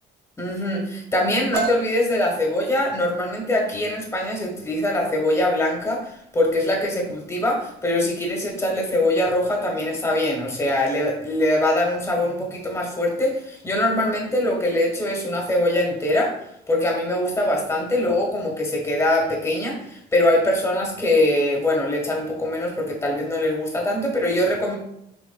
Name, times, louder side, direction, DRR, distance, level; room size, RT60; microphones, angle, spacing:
voice 1, 0.4-16.3 16.7-24.7, left 1 dB, 15° left, -1 dB, 1.3 m, -23 dB
sound 1, 1.5-9.2, right 4 dB, 75° right, 0.6 m, -37 dB
6.3 x 3.3 x 2.2 m, 0.75 s
cardioid pair, 110°, 17 cm